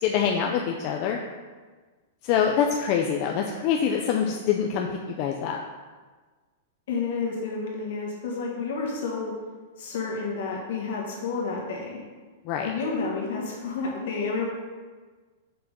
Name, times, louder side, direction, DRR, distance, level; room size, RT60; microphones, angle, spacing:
voice 1, 0.0-1.2 2.2-5.6 12.4-12.7, left 7 dB, 30° left, 1 dB, 0.3 m, -25 dB
voice 2, 6.9-9.3 9.8-12.0 12.6-14.4, left 4 dB, 60° left, -2 dB, 1.6 m, -30 dB
5.7 x 3.6 x 5.2 m, 1.4 s
supercardioid pair, 175°, 0 cm